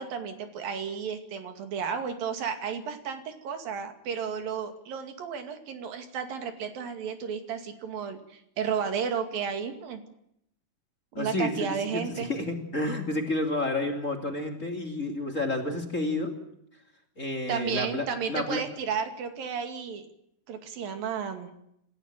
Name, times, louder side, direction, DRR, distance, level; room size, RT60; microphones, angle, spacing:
voice 1, 0.0-10.0 11.1-12.3 17.5-20.1 20.5-21.5, right 6 dB, 90° right, 7 dB, 4.2 m, -33 dB
voice 2, 11.1-16.4 17.2-18.6, left 2 dB, 20° left, 3 dB, 3.1 m, -30 dB
27.5 x 14.5 x 8.9 m, 0.77 s
omnidirectional pair, 3.9 m